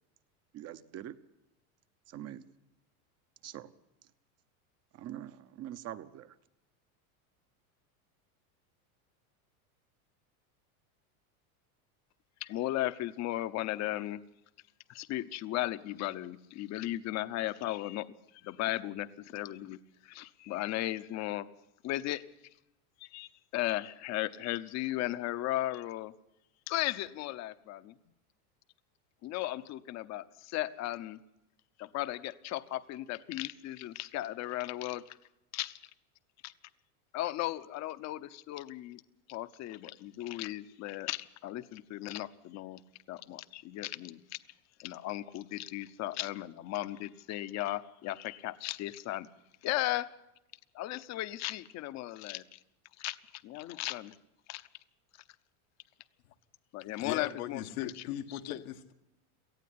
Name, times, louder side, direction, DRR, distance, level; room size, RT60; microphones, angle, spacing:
voice 1, 0.5-1.2 2.1-2.4 3.4-3.7 4.9-6.3, right 12 dB, 35° right, 11 dB, 0.9 m, -43 dB
voice 2, 12.4-14.2 14.9-18.1 18.4-19.8 20.0-21.5 21.8-22.2 23.1-26.1 26.7-27.9 29.2-31.2 31.8-35.0 35.5-35.8 36.4-36.5 37.1-39.0 39.3-42.8 43.1-44.4 44.8-49.3 49.6-50.1 50.7-52.6 53.0-53.2 53.4-54.2 54.5-54.6 56.7-57.9 58.4-58.6, left 15 dB, 40° left, 13 dB, 0.9 m, -36 dB
voice 3, 57.0-58.9, left 12 dB, 85° left, 5 dB, 1.7 m, -39 dB
18.5 x 14.5 x 9.8 m, 0.89 s
supercardioid pair, 135°, 43 cm